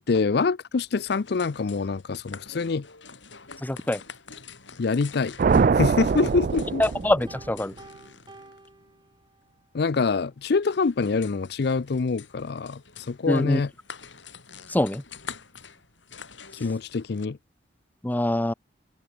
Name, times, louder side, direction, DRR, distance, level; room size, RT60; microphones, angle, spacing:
voice 1, 0.0-2.8 4.8-5.4 5.8-6.8 9.7-12.8 13.1-13.7 16.6-17.4, left 4 dB, 60° left, 0.5 m, -25 dB
sound 1, 0.8-17.3, left 6 dB, 80° left, 6.3 m, -46 dB
voice 2, 3.6-4.0 6.8-7.7 13.3-13.6 14.7-15.0 18.0-18.5, left 1 dB, 10° left, 0.5 m, -24 dB
sound 2, 5.4-7.6, right 5 dB, 45° right, 0.4 m, -23 dB
Piano, 7.3-9.7, right 2 dB, 25° right, 3.7 m, -50 dB
head